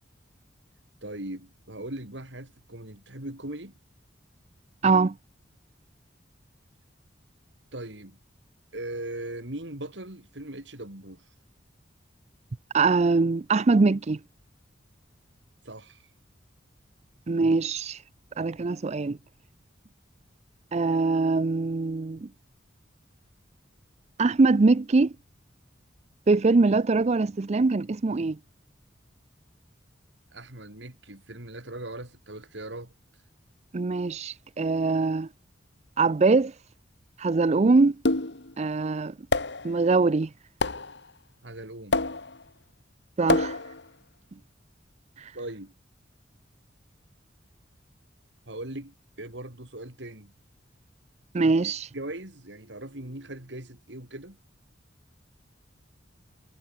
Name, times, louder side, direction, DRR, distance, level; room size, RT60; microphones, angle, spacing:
voice 1, 1.0-3.8 7.7-8.2 8.7-11.2 15.6-16.1 30.3-32.9 41.4-42.0 45.3-45.7 48.5-50.3 51.4-51.5 51.9-54.4, right 1 dB, 70° right, 4.1 m, -39 dB
voice 2, 4.8-5.1 12.7-14.2 17.3-18.0 18.4-19.2 20.7-22.3 24.2-25.1 26.3-28.4 33.7-35.3 36.0-36.5 37.2-38.0 38.6-39.1 39.6-40.3 43.2-43.6 45.2-45.3 51.3-51.9, right 3 dB, 35° right, 0.5 m, -22 dB
sound 1, 38.0-38.5 39.3-39.7 40.6-41.0 41.9-42.4 43.3-43.8, left 2 dB, 65° left, 2.3 m, -26 dB
head